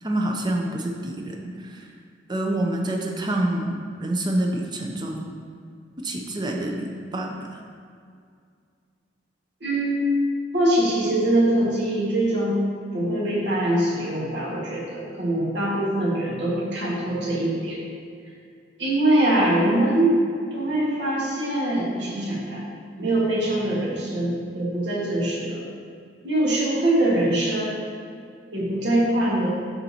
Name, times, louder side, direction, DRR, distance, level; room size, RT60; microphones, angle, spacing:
voice 1, 0.0-1.9 2.3-5.3 6.0-7.6, right 1 dB, 25° right, 1 dB, 0.6 m, -27 dB
voice 2, 9.6-10.2 10.5-12.6 12.9-17.8 18.8-20.1 20.5-22.6 23.0-25.6 26.2-27.8 28.5-29.5, right 1 dB, 65° right, -5 dB, 1.8 m, -23 dB
12.0 x 4.0 x 2.9 m, 2.3 s
head